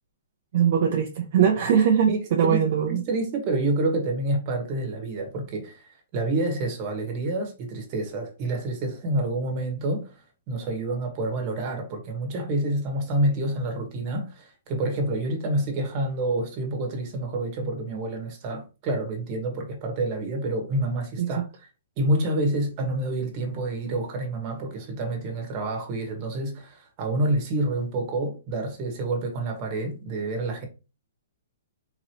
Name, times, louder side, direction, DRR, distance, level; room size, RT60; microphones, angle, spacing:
voice 1, 0.5-3.0 21.2-21.3, right 8 dB, 50° right, 0.6 m, -21 dB
voice 2, 2.1-2.6 2.9-10.2 10.5-21.7 22.0-30.7, right 2 dB, 30° right, 1.3 m, -28 dB
3.9 x 3.0 x 2.9 m
hypercardioid pair, 155°, 0 cm